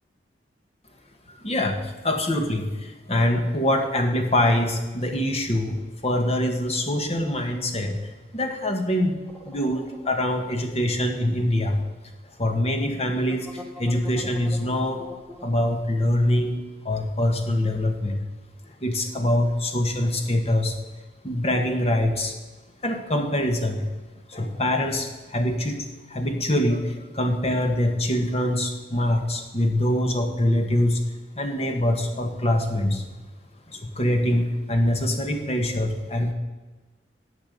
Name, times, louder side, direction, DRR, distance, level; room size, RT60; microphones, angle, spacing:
voice 1, 1.3-9.2 9.4-11.8 12.4-15.0 15.4-18.2 18.6-20.8 21.2-22.4 22.8-23.9 24.3-33.0 33.7-36.3, left 1 dB, 35° left, 4 dB, 1.5 m, -24 dB
sound 1, 9.3-11.8 12.1-12.2 13.2-15.9, left 1 dB, 5° left, 1.1 m, -43 dB
14.0 x 8.5 x 5.3 m, 1.2 s
head